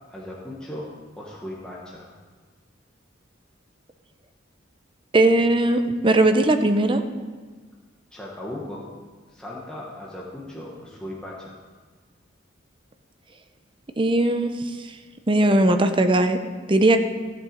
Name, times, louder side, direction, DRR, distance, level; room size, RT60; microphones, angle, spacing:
voice 1, 0.1-2.1 8.1-8.8 9.3-11.6, left 1 dB, 5° left, -5 dB, 1.2 m, -37 dB
voice 2, 5.1-7.0 14.0-14.5 15.3-16.4 16.7-17.0, right 2 dB, 25° right, 8 dB, 0.6 m, -18 dB
14.5 x 7.8 x 5.2 m, 1.5 s
head